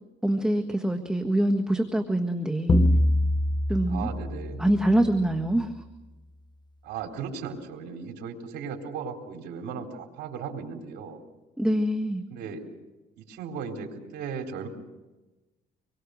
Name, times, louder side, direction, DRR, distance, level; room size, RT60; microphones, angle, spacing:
voice 1, 0.2-2.8 3.7-4.1 4.6-5.7 11.6-12.2, right 1 dB, 5° right, 5 dB, 1.6 m, -25 dB
sound 1, 2.7-5.4, left 1 dB, 25° left, 1.3 m, -25 dB
voice 2, 3.9-4.7 6.8-11.2 12.3-12.7 13.2-14.7, right 6 dB, 80° right, 2 dB, 4.1 m, -36 dB
26.5 x 23.0 x 6.5 m, 1.1 s
cardioid pair, 110°, 17 cm